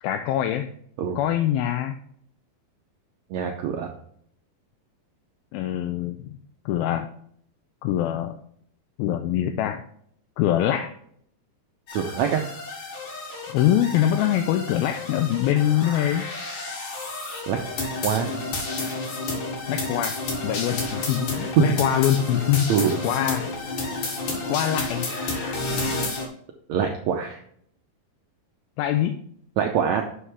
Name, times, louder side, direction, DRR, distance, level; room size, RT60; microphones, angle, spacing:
voice 1, 0.0-0.7 1.2-2.0 5.5-6.4 6.7-7.1 7.8-8.4 9.0-9.8 10.4-10.9 13.5-16.3 19.7-22.8 23.0-23.5 24.5-25.1 28.8-29.2, left 11 dB, 90° left, 6 dB, 2.4 m, -24 dB
voice 2, 3.3-3.9 11.9-12.5 17.5-17.6 18.0-18.3 21.7-21.8 22.7-23.0 26.7-27.4 29.6-30.1, right 7 dB, 85° right, 3 dB, 1.6 m, -24 dB
sound 1, 11.9-26.3, left 2 dB, 65° left, 3.2 m, -31 dB
11.0 x 6.3 x 3.4 m, 0.67 s
omnidirectional pair, 4.2 m